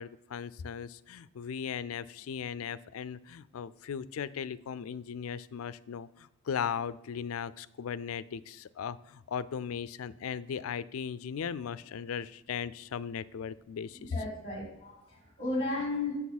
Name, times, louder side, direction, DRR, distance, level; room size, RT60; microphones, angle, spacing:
voice 1, 0.0-14.1, left 7 dB, 90° left, 18 dB, 0.4 m, -37 dB
voice 2, 14.1-16.2, left 2 dB, 25° left, -2 dB, 3.6 m, -34 dB
8.3 x 7.3 x 4.1 m, 0.88 s
head